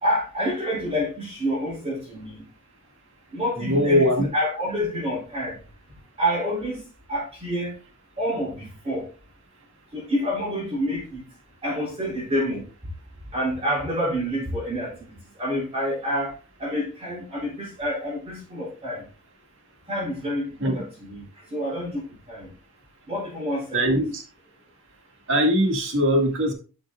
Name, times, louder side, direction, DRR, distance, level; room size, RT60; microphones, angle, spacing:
voice 1, 0.0-2.4 3.3-5.6 6.2-6.8 7.1-7.7 8.2-9.1 9.9-11.3 11.6-12.6 13.3-15.0 15.4-16.3 16.6-19.0 19.9-21.2 21.5-22.5 23.1-24.0, equal, 25° right, 3.8 m, -28 dB
voice 2, 3.6-4.3 20.6-20.7 23.7-24.2 25.3-26.5, equal, 60° right, 2.0 m, -21 dB
12.0 x 6.1 x 2.4 m
head